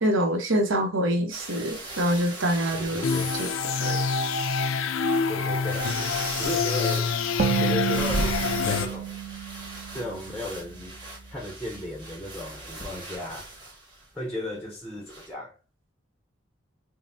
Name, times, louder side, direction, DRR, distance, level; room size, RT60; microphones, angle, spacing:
voice 1, 0.0-3.0 3.4-3.5 3.8-4.0, right 1 dB, 80° right, 0.9 m, -25 dB
sound 1, 1.3-4.5 5.0-5.1 5.5-14.1 15.1-15.3, right 1 dB, 20° right, 1.1 m, -37 dB
voice 2, 2.7-3.3 5.3-5.9 6.4-7.2 7.6-9.1 9.9-11.0 11.3-13.5 14.1-15.6, left 1 dB, 5° left, 0.6 m, -35 dB
sound 2, 3.0-8.9, left 5 dB, 90° left, 0.4 m, -26 dB
sound 3, 7.4-10.9, right 9 dB, 40° right, 0.6 m, -30 dB
5.5 x 2.0 x 2.6 m
head